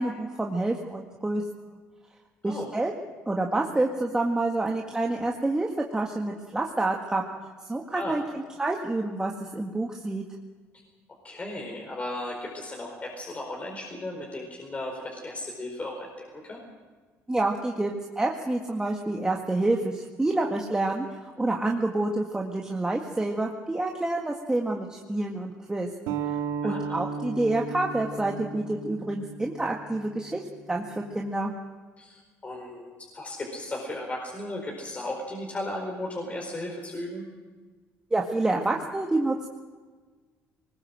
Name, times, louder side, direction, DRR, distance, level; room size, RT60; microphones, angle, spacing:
voice 1, 0.0-1.4 2.4-2.9 3.3-7.2 7.7-10.3 17.3-25.9 26.3-26.4 26.6-31.5 38.1-39.5, right 2 dB, 15° right, 0 dB, 1.9 m, -28 dB
voice 2, 11.2-16.1 16.4-16.6 26.6-27.0 32.0-37.2, left 1 dB, 25° left, -1 dB, 4.7 m, -35 dB
sound 1, 26.1-31.3, right 6 dB, 85° right, 2.0 m, -36 dB
20.0 x 19.0 x 7.7 m, 1.4 s
supercardioid pair, 90°, 5 cm